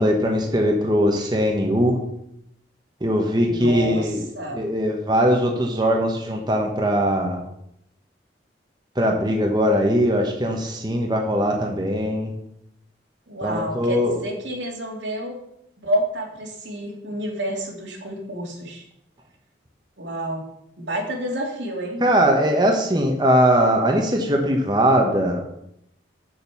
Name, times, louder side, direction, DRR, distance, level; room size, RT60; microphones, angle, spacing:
voice 1, 0.0-2.0 3.0-4.2 4.5-7.4 9.0-12.3 13.4-14.2 22.0-25.4, equal, 25° right, 1 dB, 1.1 m, -20 dB
voice 2, 3.4-4.6 13.3-15.4 15.8-18.8 20.0-20.4 20.8-22.0, equal, 85° right, 0 dB, 2.4 m, -29 dB
7.6 x 6.9 x 6.0 m, 0.78 s
head